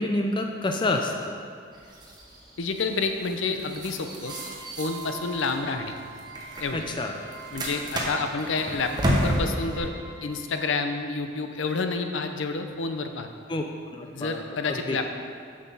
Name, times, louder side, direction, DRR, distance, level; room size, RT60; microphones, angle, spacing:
voice 1, 0.0-1.4 6.7-7.1 13.5-13.6 13.9-14.4 14.7-15.0, left 2 dB, 25° left, 3 dB, 0.4 m, -28 dB
sound 1, 1.7-9.8, equal, 20° right, 1.0 m, -32 dB
voice 2, 2.6-4.3 4.8-6.0 6.6-6.8 7.5-9.9 10.2-13.3 14.1-15.1, left 4 dB, 65° left, 6 dB, 0.6 m, -29 dB
Trumpet, 4.2-10.6, right 5 dB, 55° right, 1.0 m, -45 dB
7.2 x 6.6 x 5.4 m, 2.3 s
head